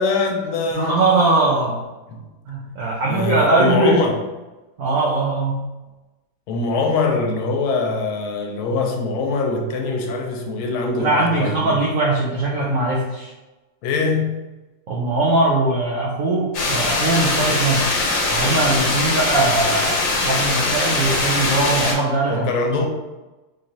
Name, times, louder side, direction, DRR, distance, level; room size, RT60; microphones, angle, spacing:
voice 1, 0.0-1.0 2.1-2.2 3.0-4.1 6.5-11.7 13.8-14.4 22.3-22.9, left 3 dB, 90° left, 2 dB, 1.5 m, -23 dB
voice 2, 0.7-1.8 2.5-4.0 4.8-5.7 11.0-13.3 14.9-17.9 18.3-22.9, right 2 dB, 85° right, -5 dB, 0.7 m, -20 dB
sound 1, 16.5-21.9, left 2 dB, 70° left, 1.6 m, -21 dB
4.3 x 3.1 x 2.6 m, 1.1 s
omnidirectional pair, 2.3 m